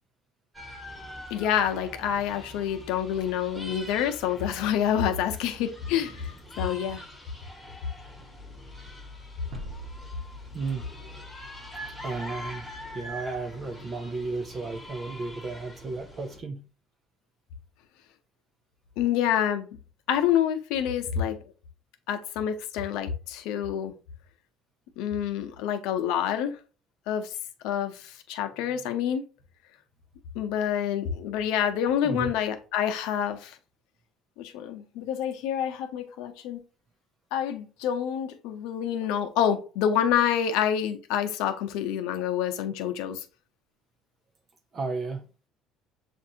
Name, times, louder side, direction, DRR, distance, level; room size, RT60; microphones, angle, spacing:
sound 1, 0.5-16.4, left 1 dB, ahead, 1.2 m, -43 dB
voice 1, 1.3-6.3 6.6-7.0 19.0-19.7 20.1-21.4 22.1-23.9 25.0-26.6 27.1-27.3 27.6-29.2 30.3-33.6 34.4-36.6 37.3-43.2, left 9 dB, 80° left, 0.7 m, -27 dB
sound 2, 9.5-12.4, right 2 dB, 75° right, 1.2 m, -44 dB
voice 2, 10.5-10.9 12.0-12.7 12.9-16.7 32.0-32.3 44.7-45.3, right 3 dB, 30° right, 0.4 m, -33 dB
7.2 x 2.6 x 2.8 m
cardioid pair, 130°, 0 cm